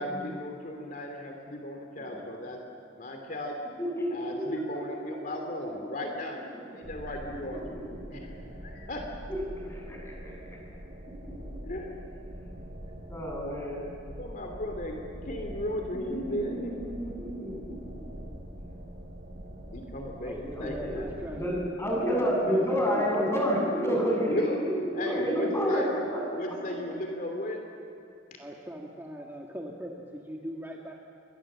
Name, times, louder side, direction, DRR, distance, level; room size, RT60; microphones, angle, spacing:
voice 1, 0.0-2.6 2.9-3.6 4.1-6.4 6.7-7.6 8.1-9.1 11.6-11.9 14.2-16.8 19.7-21.1 24.3-24.6 24.9-25.9 26.3-27.6, left 1 dB, 50° left, 2 dB, 2.9 m, -35 dB
voice 2, 3.8-4.6 5.1-5.4 6.5-6.6 7.2-7.8 8.1-8.2 9.3-9.4 9.7-10.5 13.1-13.8 15.9-17.7 20.5-21.0 21.3-26.6, equal, 15° left, -2 dB, 7.8 m, -30 dB
sound 1, 6.8-21.6, equal, 50° right, 4.6 m, -43 dB
voice 3, 20.2-21.5 22.0-23.5 28.4-30.9, equal, 10° right, -1 dB, 1.8 m, -39 dB
28.0 x 23.5 x 7.5 m, 2.5 s
head